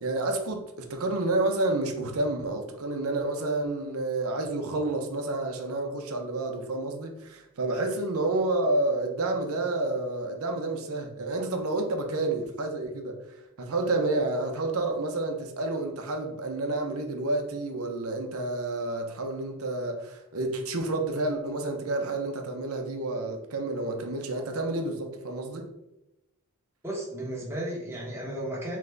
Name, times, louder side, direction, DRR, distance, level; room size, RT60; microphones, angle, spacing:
voice 1, 0.0-13.2 13.6-25.7, right 2 dB, 80° right, 0.7 m, -29 dB
voice 2, 26.8-28.8, right 1 dB, 10° right, 0.9 m, -34 dB
3.8 x 3.2 x 3.3 m
head